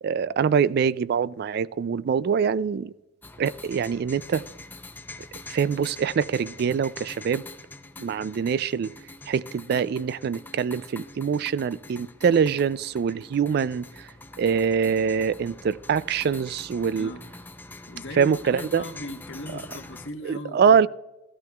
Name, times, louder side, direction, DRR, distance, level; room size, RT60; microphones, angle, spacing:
voice 1, 0.0-2.9 3.4-4.4 5.5-7.4 8.0-8.9 9.3-14.1 14.4-17.1 18.2-18.8 19.5-19.6 20.2-20.9, right 6 dB, 55° right, 0.3 m, -24 dB
sound 1, 3.2-20.1, left 2 dB, 10° left, 0.5 m, -44 dB
voice 2, 17.0-17.3 17.9-20.9, left 2 dB, 85° left, 1.2 m, -38 dB
16.0 x 13.5 x 2.3 m
head